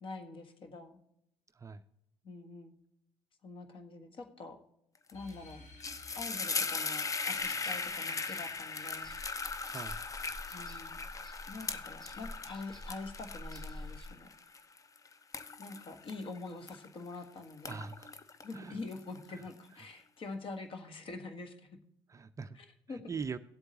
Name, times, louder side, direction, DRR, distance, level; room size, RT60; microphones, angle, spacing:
voice 1, 0.0-1.0 2.2-2.8 3.4-4.6 5.1-5.6 6.1-9.1 10.5-11.0 11.5-14.3 15.6-17.9 18.4-21.8 22.5-23.0, left 3 dB, 40° left, 7 dB, 1.5 m, -45 dB
sound 1, 5.1-10.1, left 2 dB, 55° left, 2.1 m, -59 dB
sound 2, 5.1-5.3 5.6-17.2 17.5-19.4, left 4 dB, 25° left, 0.7 m, -39 dB
sound 3, 7.3-14.1, left 1 dB, ahead, 2.2 m, -49 dB
voice 2, 9.7-10.0 17.7-18.1 18.5-18.8 19.3-19.5 19.8-19.9 22.1-22.6 22.9-23.4, right 5 dB, 25° right, 11 dB, 0.5 m, -42 dB
16.5 x 7.9 x 2.9 m, 0.80 s
figure-of-eight pair, 60°, 13 cm